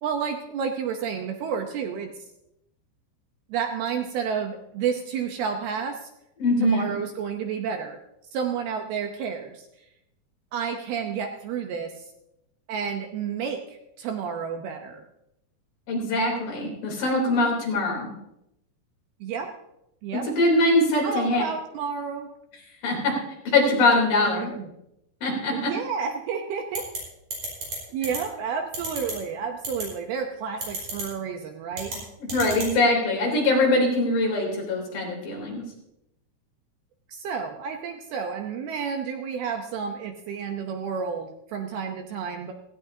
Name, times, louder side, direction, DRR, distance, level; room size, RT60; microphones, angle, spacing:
voice 1, 0.0-2.1 3.5-6.1 6.6-8.0 8.3-9.6 10.5-12.1 12.7-15.0 19.2-19.5 20.0-20.3 21.0-22.3 24.2-24.7 25.5-26.9 27.9-31.9 37.1-42.5, right 6 dB, 75° right, 4 dB, 2.5 m, -30 dB
voice 2, 6.4-6.9 15.9-18.1 20.4-21.4 22.8-23.1 23.4-24.5 25.2-25.7 32.3-35.6, left 2 dB, 55° left, -1 dB, 4.9 m, -22 dB
sound 1, 26.7-27.0 27.3-27.8 28.0-28.2 28.7-29.1 29.6-29.8 30.6-31.0 31.7-32.0 32.3-32.7, right 3 dB, 45° right, 6.0 m, -31 dB
17.0 x 16.0 x 2.8 m, 0.83 s
omnidirectional pair, 5.1 m